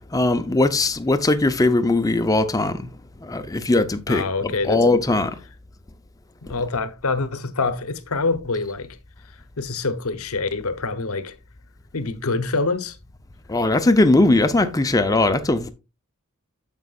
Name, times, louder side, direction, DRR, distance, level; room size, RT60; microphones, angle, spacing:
voice 1, 0.1-2.9 3.2-5.4 13.5-15.7, left 2 dB, 15° left, 0.6 m, -19 dB
voice 2, 4.1-4.8 6.4-9.0 9.6-11.3 11.9-13.0, left 3 dB, 70° left, 0.9 m, -25 dB
9.4 x 7.2 x 2.4 m
head